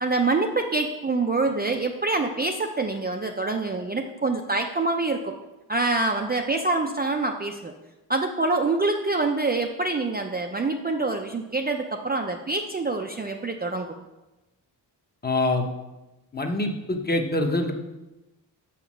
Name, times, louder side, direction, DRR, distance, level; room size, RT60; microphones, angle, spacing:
voice 1, 0.0-5.4 5.7-7.7 8.1-13.9, right 3 dB, 25° right, 3 dB, 0.4 m, -26 dB
voice 2, 15.2-15.7 16.3-17.7, left 2 dB, 25° left, 4 dB, 0.8 m, -25 dB
7.1 x 5.8 x 6.0 m, 1.0 s
wide cardioid pair, 155°, 41 cm